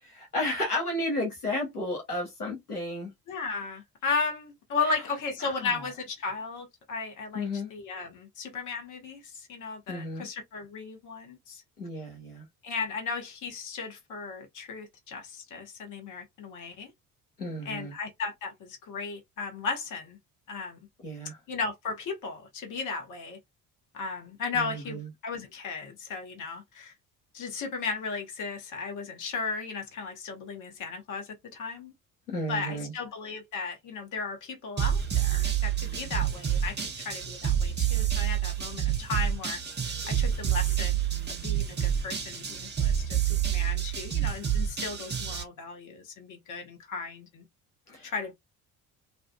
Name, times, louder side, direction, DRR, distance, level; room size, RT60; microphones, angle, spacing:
voice 1, 0.0-3.1 4.8-4.9 5.4-5.8 7.3-7.7 9.9-10.3 11.8-12.5 17.4-17.9 21.0-21.4 24.5-25.1 32.3-32.9 47.9-48.1, left 1 dB, 90° left, 0.9 m, -33 dB
voice 2, 3.3-11.6 12.6-16.9 17.6-20.2 20.5-20.8 21.5-23.4 23.9-26.9 27.3-31.9 32.5-36.8 37.0-41.0 41.3-47.4 48.0-48.3, left 4 dB, 45° left, 1.0 m, -35 dB
sound 1, 34.8-45.4, right 10 dB, 25° right, 0.8 m, -28 dB
2.5 x 2.4 x 2.2 m
figure-of-eight pair, 50°, 44 cm